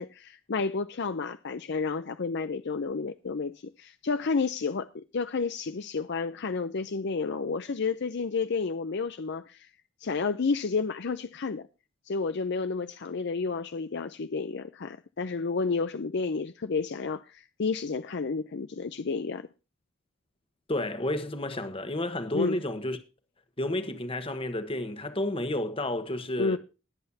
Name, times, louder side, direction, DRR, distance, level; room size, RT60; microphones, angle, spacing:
voice 1, 0.0-9.7 10.0-11.6 12.1-19.5 22.3-22.6 26.4-26.6, left 4 dB, 55° left, 0.6 m, -31 dB
voice 2, 20.7-23.0 23.6-26.6, left 1 dB, 25° left, 1.4 m, -31 dB
21.0 x 7.9 x 2.8 m
head